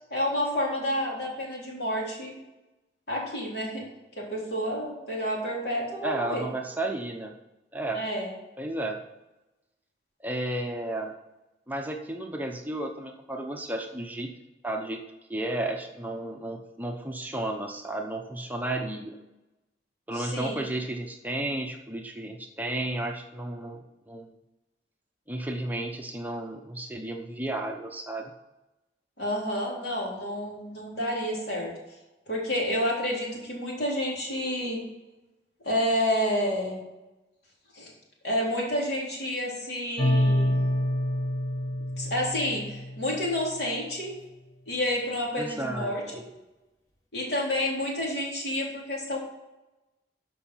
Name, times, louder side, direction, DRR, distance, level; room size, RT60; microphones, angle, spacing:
voice 1, 0.1-2.3 3.1-3.8 4.2-6.4 7.9-8.3 20.1-20.6 29.2-31.7 32.3-34.8 35.6-36.8 37.7-37.9 38.2-40.6 42.0-44.1 44.7-46.0 47.1-49.2, left 1 dB, 65° left, -3 dB, 3.6 m, -29 dB
voice 2, 6.0-7.3 7.7-8.0 8.6-9.0 10.2-11.1 11.7-14.3 14.6-15.0 15.3-19.2 20.1-23.8 24.1-24.3 25.3-28.3 45.4-46.2, right 1 dB, 10° right, 2 dB, 0.7 m, -33 dB
sound 1, 40.0-43.4, left 1 dB, 20° left, 1.4 m, -27 dB
13.0 x 5.5 x 5.7 m, 1.0 s
head